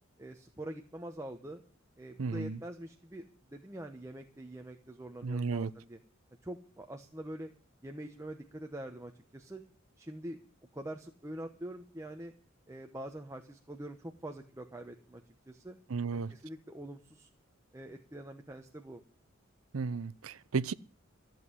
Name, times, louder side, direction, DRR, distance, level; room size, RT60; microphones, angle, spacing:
voice 1, 0.2-1.6 2.0-6.0 6.4-7.5 7.8-9.6 10.0-10.4 10.7-12.3 12.7-15.8 16.1-17.3 17.7-19.0, right 1 dB, 15° right, 1.0 m, -44 dB
voice 2, 2.2-2.6 5.2-5.7 15.9-16.3 19.7-20.7, right 4 dB, 85° right, 0.6 m, -33 dB
14.5 x 7.7 x 9.7 m
head